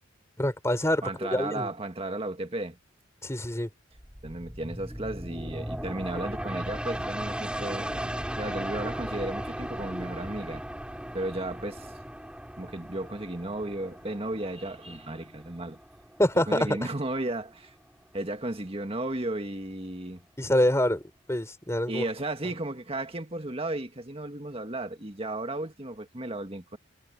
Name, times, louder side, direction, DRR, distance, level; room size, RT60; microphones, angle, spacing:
voice 1, 0.4-1.7 3.2-3.7 16.2-16.8 20.4-21.0 21.3-22.0, left 1 dB, 15° left, 4.0 m, -25 dB
voice 2, 1.0-2.8 4.2-10.6 11.1-11.9 12.6-15.8 16.5-17.7 18.1-20.2 21.9-26.8, right 1 dB, 30° right, 1.7 m, -34 dB
sound 1, 4.0-17.3 17.7-17.8, equal, 5° right, 6.5 m, -37 dB
head